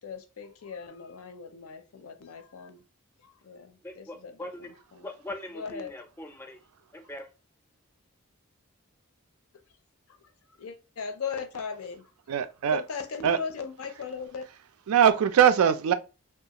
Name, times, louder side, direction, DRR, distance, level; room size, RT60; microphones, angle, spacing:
voice 1, 0.0-2.8 3.2-5.1 5.5-5.9 10.1-10.2 10.6-12.1 12.7-14.5, left 5 dB, 80° left, 0.5 m, -38 dB
voice 2, 3.8-4.7 5.0-6.6 6.9-7.3, left 1 dB, 10° left, 0.4 m, -41 dB
voice 3, 12.3-12.8 13.2-13.4 14.9-15.9, right 8 dB, 85° right, 0.4 m, -21 dB
2.3 x 2.3 x 2.8 m
head